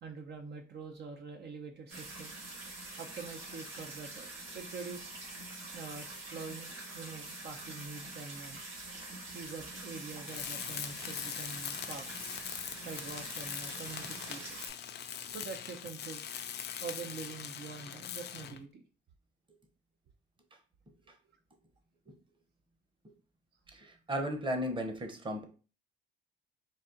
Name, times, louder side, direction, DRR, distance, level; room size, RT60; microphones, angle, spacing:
voice 1, 0.0-2.4 3.0-5.1 5.7-8.6 9.3-12.3 12.8-14.7 15.3-16.3 16.8-18.8, right 5 dB, 55° right, 3 dB, 0.6 m, -45 dB
sound 1, 1.9-14.7, right 2 dB, 85° right, 1.6 m, -45 dB
Tools, 10.3-18.6, left 9 dB, 55° left, 0.5 m, -42 dB
voice 2, 23.7-25.5, equal, 25° right, 5 dB, 0.9 m, -35 dB
4.0 x 2.5 x 3.8 m, 0.36 s
cardioid pair, 90°, 20 cm